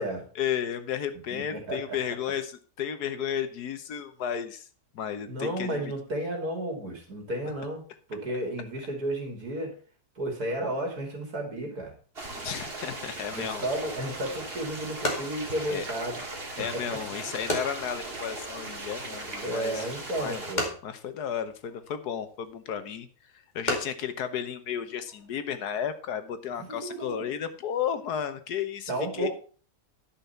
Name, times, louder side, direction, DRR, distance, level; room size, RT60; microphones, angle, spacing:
voice 1, 0.3-4.7 4.9-5.9 12.4-13.6 15.7-15.9 16.6-19.9 20.2-20.4 20.8-23.1 23.3-29.3, left 8 dB, 90° left, 11 dB, 1.5 m, -33 dB
voice 2, 1.3-2.0 5.3-7.8 8.1-9.7 10.2-11.9 13.3-16.2 16.6-17.0 19.4-20.7 26.7-27.1 28.9-29.3, right 1 dB, 70° right, 2 dB, 3.2 m, -32 dB
sound 1, 12.2-20.6, right 2 dB, 35° right, 2.3 m, -38 dB
sound 2, 14.8-25.3, left 1 dB, 30° left, 2.4 m, -38 dB
10.5 x 5.8 x 5.6 m, 0.40 s
omnidirectional pair, 1.7 m